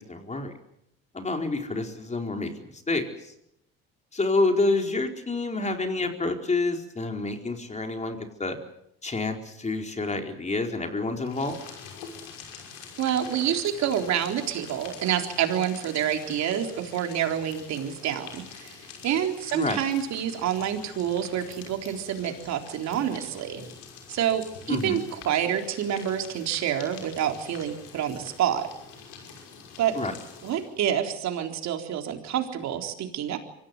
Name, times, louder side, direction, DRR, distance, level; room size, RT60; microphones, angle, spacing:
voice 1, 0.1-0.5 1.1-3.0 4.1-8.6 9.0-11.6 19.5-19.8 24.7-25.0 29.9-30.1, left 3 dB, 25° left, 4 dB, 4.5 m, -28 dB
sound 1, 11.2-30.8, left 6 dB, 90° left, 5.8 m, -45 dB
voice 2, 13.0-18.8 19.0-23.6 24.1-28.7 29.8-30.0 30.4-33.4, right 10 dB, 65° right, 5 dB, 3.9 m, -28 dB
24.5 x 16.5 x 9.7 m, 0.79 s
supercardioid pair, 80°, 30 cm